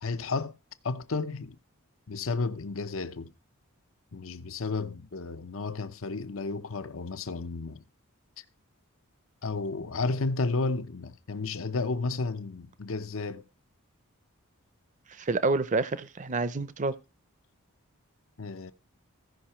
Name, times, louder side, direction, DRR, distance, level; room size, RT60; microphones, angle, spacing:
voice 1, 0.0-0.6 0.8-1.6 2.1-3.3 4.1-7.8 9.4-13.4 18.4-18.7, left 3 dB, 70° left, 0.8 m, -32 dB
voice 2, 15.1-16.9, right 3 dB, 35° right, 0.6 m, -28 dB
15.5 x 5.7 x 4.3 m
head